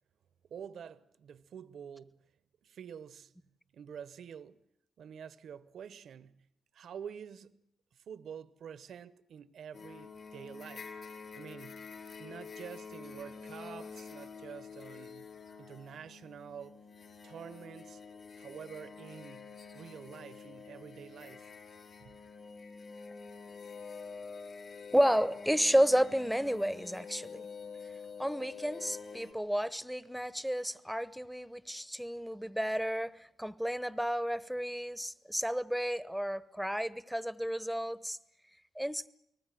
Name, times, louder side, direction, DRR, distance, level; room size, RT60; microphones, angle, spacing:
voice 1, 0.5-2.2 2.6-3.3 3.7-4.6 5.0-6.5 6.7-11.0 11.3-11.9 12.2-15.3 15.6-16.8 17.2-18.0 18.4-21.5 22.0-22.2, right 8 dB, 75° right, 1.0 m, -48 dB
sound 1, 9.7-29.3, left 5 dB, 50° left, 4.3 m, -47 dB
voice 2, 24.9-27.4 28.2-38.2 38.8-39.1, equal, ahead, 0.9 m, -31 dB
30.0 x 20.0 x 7.7 m
cardioid pair, 110°, 0 cm